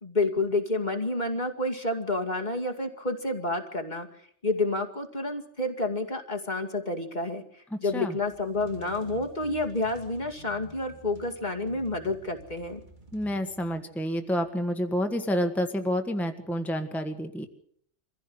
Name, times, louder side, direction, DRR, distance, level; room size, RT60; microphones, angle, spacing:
voice 1, 0.0-4.1 4.4-12.8, left 2 dB, 40° left, 4 dB, 2.4 m, -29 dB
voice 2, 7.7-8.1 13.1-17.5, equal, ahead, 5 dB, 1.5 m, -29 dB
sound 1, 8.2-14.1, right 2 dB, 45° right, 2.3 m, -50 dB
24.5 x 15.5 x 7.9 m, 0.64 s
omnidirectional pair, 1.2 m